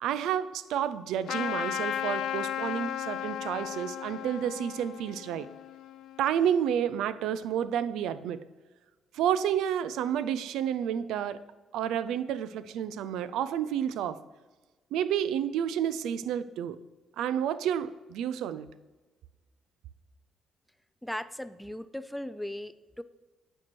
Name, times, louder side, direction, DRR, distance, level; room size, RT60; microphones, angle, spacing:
voice 1, 0.0-5.5 6.2-8.4 9.1-11.4 11.7-14.2 14.9-16.8 17.2-18.7, right 9 dB, 90° right, 15 dB, 0.3 m, -30 dB
Trumpet, 1.3-6.3, left 10 dB, 75° left, 0.4 m, -35 dB
voice 2, 21.0-23.0, left 1 dB, 5° left, 13 dB, 0.3 m, -38 dB
8.7 x 4.6 x 4.4 m, 1.2 s
cardioid pair, 90°, 0 cm